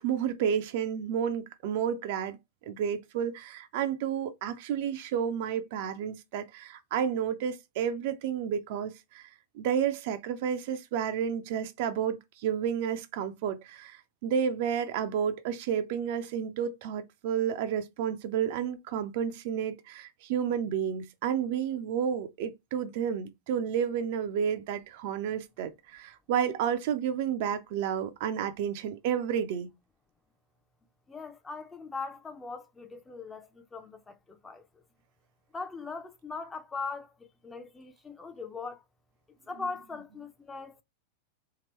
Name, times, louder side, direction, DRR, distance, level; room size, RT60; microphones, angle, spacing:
voice 1, 0.0-2.4 2.6-9.3 9.5-29.7, right 8 dB, 50° right, 0.4 m, -31 dB
voice 2, 31.1-34.7 35.5-38.8 39.5-40.8, left 4 dB, 15° left, 0.5 m, -40 dB
2.9 x 2.9 x 2.9 m
figure-of-eight pair, 90°, 0 cm